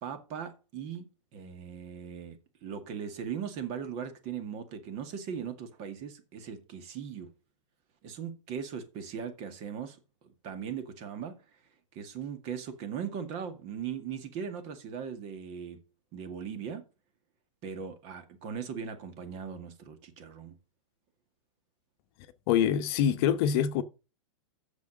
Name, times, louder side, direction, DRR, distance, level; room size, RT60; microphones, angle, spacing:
voice 1, 0.0-1.1 1.3-7.3 8.0-10.0 10.4-11.4 11.9-15.8 16.1-16.8 17.6-20.6, right 7 dB, 40° right, 2.0 m, -39 dB
voice 2, 22.5-23.8, left 9 dB, 50° left, 1.0 m, -25 dB
8.1 x 7.0 x 6.3 m
hypercardioid pair, 130°, 17 cm